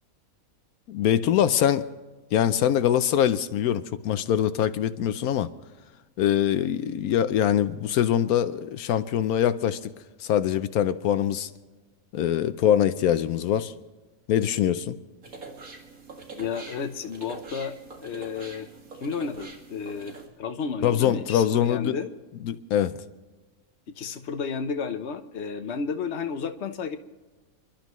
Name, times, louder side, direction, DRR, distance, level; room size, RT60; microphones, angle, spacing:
voice 1, 0.9-1.8 2.3-5.5 6.2-9.9 10.2-11.5 12.1-13.7 14.3-14.9 20.8-21.9 22.5-23.0, left 10 dB, 80° left, 1.1 m, -23 dB
sound 1, 15.2-20.3, right 3 dB, 70° right, 2.4 m, -44 dB
voice 2, 16.4-17.7 18.0-18.7 19.0-22.1 24.0-27.0, left 6 dB, 55° left, 1.1 m, -32 dB
29.0 x 12.0 x 3.1 m
omnidirectional pair, 1.5 m